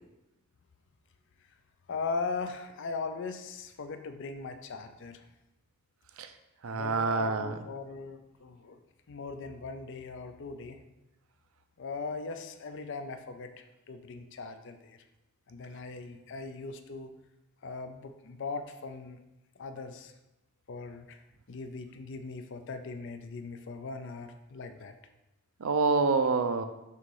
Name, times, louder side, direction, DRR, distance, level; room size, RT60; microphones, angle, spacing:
voice 1, 1.9-5.3 6.7-8.8 9.1-10.8 11.8-15.0 15.5-17.1 17.6-19.2 19.6-20.1 20.7-21.2 21.5-24.9, left 4 dB, 60° left, 8 dB, 0.5 m, -39 dB
voice 2, 6.6-7.5 25.6-26.6, right 4 dB, 75° right, 9 dB, 0.6 m, -27 dB
6.4 x 3.1 x 5.4 m, 0.96 s
head